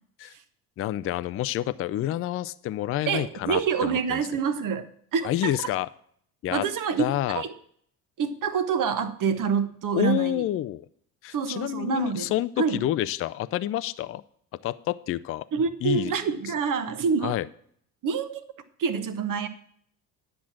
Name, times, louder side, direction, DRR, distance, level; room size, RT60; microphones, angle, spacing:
voice 1, 0.8-4.3 5.2-5.9 6.4-6.6 7.0-7.4 9.9-10.9 11.2-14.2 14.6-15.4 15.8-16.1 17.2-17.5, left 13 dB, 30° left, 14 dB, 0.4 m, -28 dB
voice 2, 3.1-5.5 6.5-7.5 8.2-10.4 11.3-12.8 15.5-17.4 18.0-18.4 18.8-19.5, right 6 dB, 40° right, 10 dB, 1.2 m, -27 dB
10.0 x 6.1 x 5.9 m, 0.63 s
hypercardioid pair, 60°, 47 cm